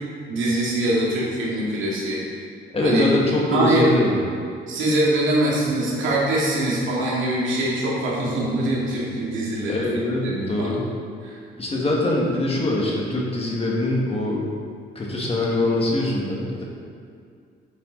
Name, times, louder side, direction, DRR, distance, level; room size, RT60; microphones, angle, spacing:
voice 1, 0.3-2.2 2.8-3.1 3.5-4.0 4.7-9.8 10.2-10.7 11.2-11.4, right 1 dB, 80° right, -5 dB, 2.0 m, -23 dB
voice 2, 2.7-4.2 9.6-10.8 11.6-14.4 15.0-16.6, left 2 dB, 30° left, -3 dB, 1.6 m, -23 dB
8.3 x 5.8 x 3.9 m, 2.2 s
cardioid pair, 90°, 20 cm